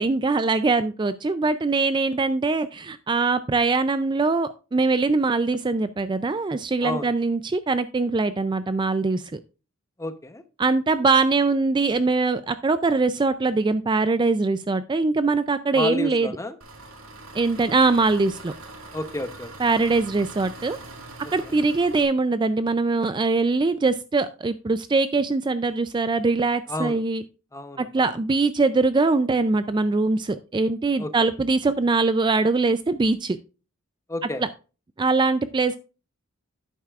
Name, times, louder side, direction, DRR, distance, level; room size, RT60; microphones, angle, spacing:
voice 1, 0.0-9.4 10.6-16.3 17.3-18.5 19.6-20.8 21.3-27.2 27.8-33.4 34.4-34.5 35.0-35.8, right 3 dB, 20° right, 12 dB, 0.3 m, -22 dB
voice 2, 10.0-10.4 15.7-16.6 18.9-19.5 21.4-21.6 26.7-27.0 27.5-28.1 31.0-31.3 34.1-34.4, left 2 dB, 15° left, 9 dB, 0.8 m, -31 dB
Engine, 16.6-22.0, right 2 dB, 80° right, 2.1 m, -42 dB
11.0 x 9.1 x 2.4 m, 0.33 s
head